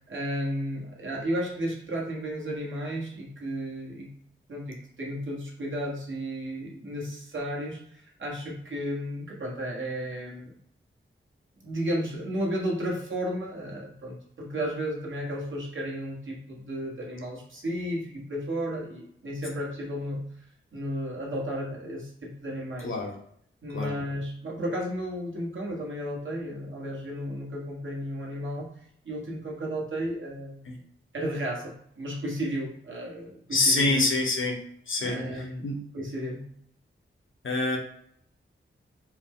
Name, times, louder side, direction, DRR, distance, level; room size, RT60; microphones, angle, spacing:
voice 1, 0.1-4.1 4.5-10.6 11.6-20.2 20.7-23.0 23.6-28.7 29.0-30.7 31.1-34.0 35.0-35.7 35.9-36.5, equal, 65° right, -3 dB, 1.4 m, -33 dB
voice 2, 22.8-23.2 23.7-23.9 30.7-30.8 33.5-35.8 37.4-37.8, left 2 dB, 75° left, 1 dB, 0.9 m, -26 dB
4.5 x 2.2 x 3.6 m, 0.67 s
cardioid pair, 60°, 21 cm